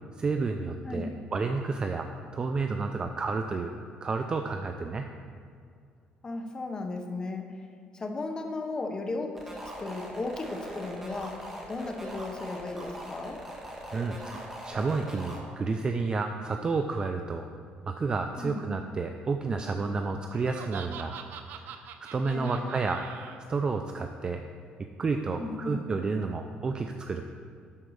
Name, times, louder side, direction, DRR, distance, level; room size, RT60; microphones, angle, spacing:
voice 1, 0.2-3.7 4.0-5.1 13.9-17.5 17.9-21.2 21.6-23.1 23.5-24.4 25.0-27.2, right 4 dB, 25° right, 5 dB, 0.4 m, -30 dB
voice 2, 6.2-7.7 7.9-13.5 18.3-18.7 22.3-23.0 25.3-25.9, left 3 dB, 25° left, 4 dB, 0.9 m, -36 dB
sound 1, 9.4-15.4, equal, 10° right, 1.5 m, -41 dB
Laughter, 20.3-23.4, right 8 dB, 75° right, 0.7 m, -44 dB
11.0 x 4.5 x 6.4 m, 2.2 s
cardioid pair, 140°, 3 cm